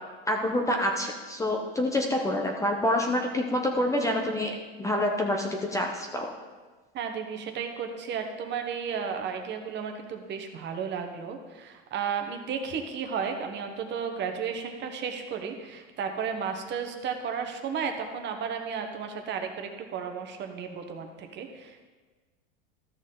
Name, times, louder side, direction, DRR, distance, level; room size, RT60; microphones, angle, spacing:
voice 1, 0.3-6.3, left 1 dB, 10° left, 1 dB, 0.7 m, -27 dB
voice 2, 6.9-21.9, right 6 dB, 35° right, 5 dB, 1.1 m, -33 dB
13.5 x 6.3 x 3.8 m, 1.3 s
supercardioid pair, 130°, 31 cm